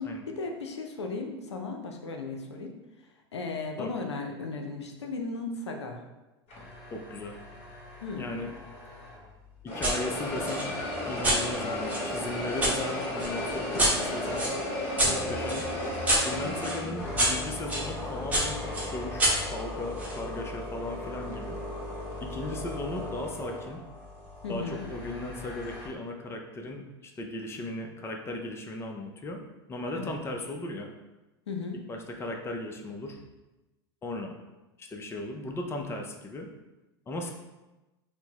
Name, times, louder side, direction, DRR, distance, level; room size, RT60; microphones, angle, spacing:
voice 1, 0.0-2.7 3.3-6.0 8.0-8.3 16.4-16.9 24.4-24.9 29.9-30.1 31.5-31.8, left 3 dB, 85° left, 3 dB, 0.5 m, -36 dB
sound 1, 6.5-9.3 9.7-25.9, left 1 dB, 45° left, 1.2 m, -36 dB
voice 2, 6.9-7.4 8.2-8.5 9.7-10.7 11.1-14.5 15.0-15.6 16.2-21.6 22.2-23.8 24.5-29.4 29.7-30.9 31.9-33.2 34.0-34.4 34.8-36.5 37.1-37.3, left 2 dB, 20° left, 3 dB, 0.5 m, -37 dB
sound 2, 9.8-10.0 10.4-12.7 13.2-17.9 18.3-20.2, right 1 dB, 10° right, 0.9 m, -29 dB
4.3 x 2.0 x 2.8 m, 1.1 s
hypercardioid pair, 90°, 14 cm